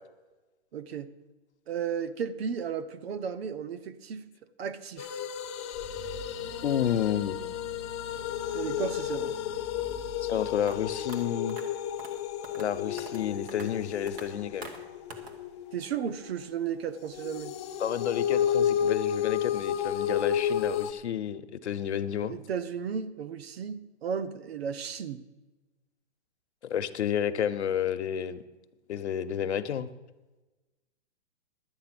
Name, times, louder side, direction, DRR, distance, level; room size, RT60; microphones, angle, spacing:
voice 1, 0.7-1.1 1.7-4.3 4.6-5.3 8.5-9.4 15.7-17.5 22.3-25.2, right 7 dB, 65° right, 13 dB, 1.0 m, -34 dB
sound 1, 5.0-16.5 17.1-20.9, left 9 dB, 25° left, 0.5 m, -32 dB
sound 2, 5.3-11.2, equal, 35° right, 3.6 m, -46 dB
voice 2, 6.6-7.4 10.2-11.6 12.6-14.7 17.8-22.3 26.6-28.4 28.9-29.9, left 9 dB, 80° left, 11 dB, 0.9 m, -30 dB
sound 3, 10.7-10.8 11.1-11.2 11.5-11.6 12.0-12.1 12.4-12.7 13.0-13.2 13.5-13.7 14.1-14.3 14.6-14.8 15.1-15.3, right 2 dB, 20° right, 1.3 m, -43 dB
11.5 x 9.0 x 6.0 m, 1.1 s
hypercardioid pair, 150°, 34 cm